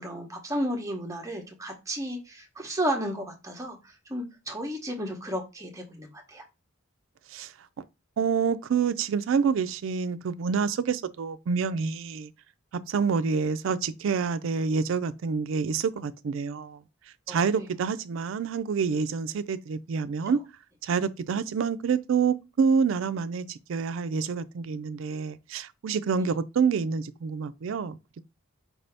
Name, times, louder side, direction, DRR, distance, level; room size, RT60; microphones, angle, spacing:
voice 1, 0.0-6.4 17.3-17.4 26.1-26.3, equal, 15° right, 0.8 m, -33 dB
voice 2, 8.2-12.3 12.9-16.8 17.3-20.4 20.8-28.2, right 5 dB, 65° right, 0.3 m, -27 dB
4.7 x 2.6 x 3.3 m
head